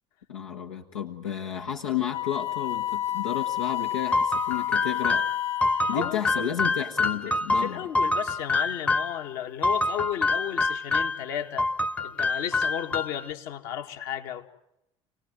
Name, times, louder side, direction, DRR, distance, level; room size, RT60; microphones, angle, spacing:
voice 1, 0.3-5.2 5.9-7.8, left 8 dB, 85° left, 0 dB, 1.3 m, -32 dB
Wind instrument woodwind instrument, 2.1-6.3, left 14 dB, 45° left, 1.6 m, -30 dB
sound 1, 4.1-9.2 9.6-11.2 11.6-13.3, left 3 dB, 10° left, 0.9 m, -26 dB
voice 2, 5.9-6.5 7.3-11.7 12.0-14.5, left 10 dB, 65° left, 5 dB, 2.0 m, -34 dB
29.0 x 18.5 x 9.4 m, 0.88 s
hypercardioid pair, 65°, 16 cm